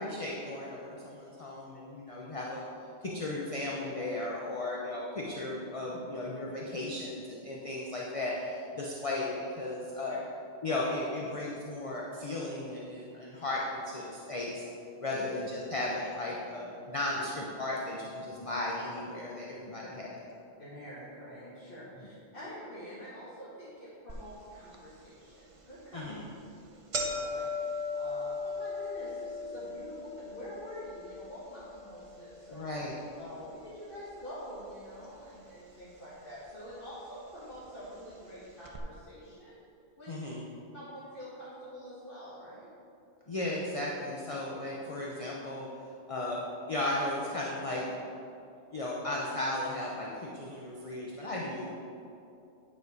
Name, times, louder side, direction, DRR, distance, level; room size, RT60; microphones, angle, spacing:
voice 1, 0.0-2.6 3.0-10.2 10.6-14.6 15.0-20.2 22.0-22.1 25.9-26.2 32.5-33.0 40.1-40.5 43.3-45.7 46.1-46.4 46.7-47.8 48.7-51.7, left 2 dB, 35° left, -3 dB, 0.7 m, -35 dB
voice 2, 20.6-26.1 26.9-32.7 33.2-39.6 40.0-40.2 40.7-42.7, equal, 55° left, -10 dB, 1.6 m, -46 dB
sound 1, 24.1-24.2 24.7-24.8 25.7-25.9 26.2-26.3 26.5-34.8 35.0-35.8 36.6-36.7 37.6-37.7 38.0-38.1 38.6-38.8, left 2 dB, 35° right, 0.6 m, -39 dB
9.5 x 4.4 x 4.8 m, 2.7 s
omnidirectional pair, 1.2 m